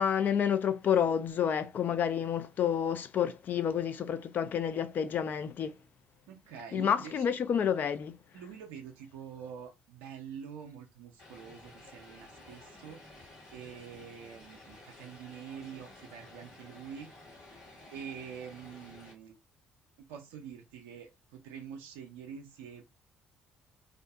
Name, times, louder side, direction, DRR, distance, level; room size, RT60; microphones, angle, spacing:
voice 1, 0.0-5.8 6.7-8.2, left 8 dB, 45° left, 0.4 m, -29 dB
voice 2, 6.3-7.4 8.3-17.1 17.9-19.4 20.0-22.8, right 7 dB, 65° right, 0.4 m, -46 dB
Vehicle, 11.2-19.1, left 2 dB, 65° left, 1.2 m, -53 dB
2.5 x 2.4 x 2.2 m
figure-of-eight pair, 45°, 4 cm